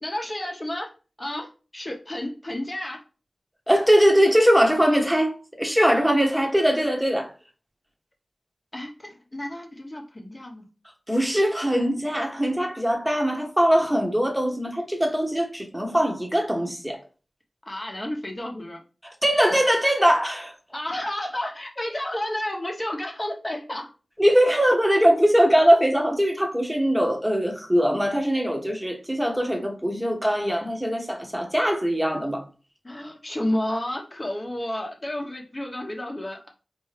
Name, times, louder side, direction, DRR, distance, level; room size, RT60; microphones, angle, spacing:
voice 1, 0.0-0.9 1.2-3.0 8.7-10.6 17.7-18.8 20.7-23.9 32.8-36.5, left 1 dB, 35° left, 1.0 m, -31 dB
voice 2, 3.7-7.3 11.1-17.0 19.0-20.5 24.2-32.4, equal, 5° right, 1.0 m, -21 dB
4.4 x 2.7 x 3.2 m
wide cardioid pair, 50°, 0 cm